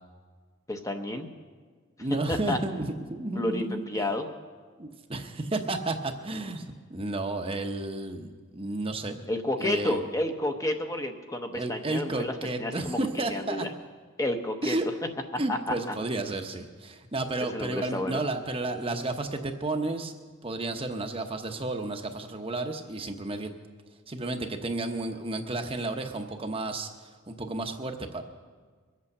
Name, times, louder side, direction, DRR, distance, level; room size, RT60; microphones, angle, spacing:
voice 1, 0.7-1.3 2.3-2.6 3.4-4.3 9.3-13.0 13.3-13.7 14.2-14.8 15.5-15.9 17.5-18.2, left 1 dB, 15° left, 5 dB, 0.8 m, -30 dB
voice 2, 2.0-4.1 4.8-9.2 9.6-10.0 11.5-13.7 14.6-14.9 15.4-20.1 20.4-23.5 24.1-26.9 27.3-28.2, right 2 dB, 25° right, 5 dB, 0.9 m, -32 dB
22.5 x 8.4 x 6.6 m, 1.5 s
head